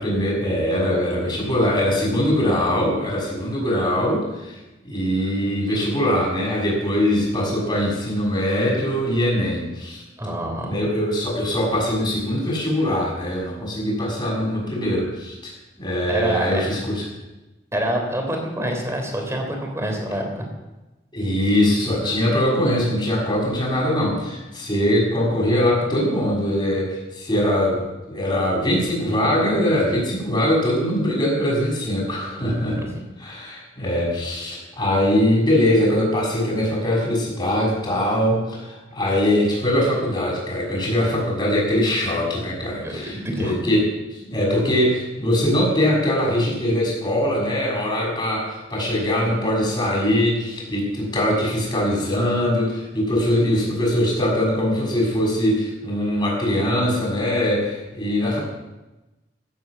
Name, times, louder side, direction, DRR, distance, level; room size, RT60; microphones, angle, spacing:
voice 1, 0.0-4.5 4.8-10.0 10.6-15.5 15.8-17.0 21.1-32.8 33.2-43.9 44.3-58.4, left 1 dB, 25° left, -3 dB, 6.6 m, -22 dB
voice 2, 10.2-10.9 16.1-16.6 17.7-20.5 32.3-32.9 42.8-43.6, equal, 15° right, 2 dB, 3.6 m, -27 dB
16.0 x 9.5 x 7.3 m, 1.0 s
head